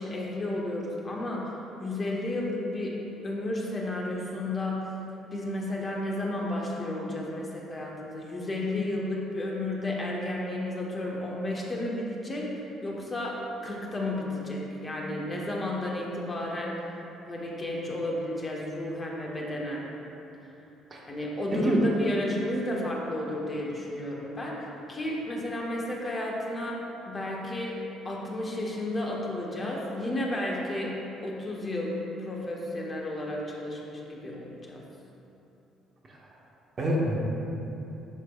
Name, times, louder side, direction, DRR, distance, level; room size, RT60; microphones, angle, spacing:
voice 1, 0.0-4.9 5.3-16.8 17.3-19.9 21.1-26.8 27.1-27.7 28.0-34.9, left 1 dB, 30° left, -2 dB, 1.4 m, -32 dB
voice 2, 21.5-21.9 36.1-36.3 36.8-37.3, right 1 dB, 35° right, -2 dB, 1.3 m, -26 dB
11.0 x 6.7 x 2.5 m, 2.9 s
figure-of-eight pair, 50°, 0 cm